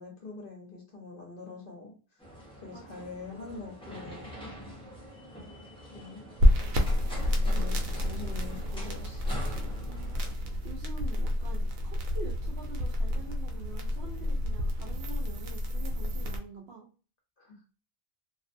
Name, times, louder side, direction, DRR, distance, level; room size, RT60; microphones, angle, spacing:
voice 1, 0.0-2.2 2.6-4.4 5.9-6.3 7.4-9.2 17.4-17.6, left 4 dB, 55° left, -1 dB, 0.7 m, -44 dB
sound 1, 2.2-10.3, equal, 5° left, 0.4 m, -45 dB
voice 2, 2.7-3.1 9.8-10.2 10.6-16.9, right 3 dB, 65° right, 0 dB, 0.7 m, -46 dB
sound 2, 6.4-16.4, left 1 dB, 90° right, 1.0 m, -29 dB
2.4 x 2.1 x 2.5 m, 0.36 s
omnidirectional pair, 1.4 m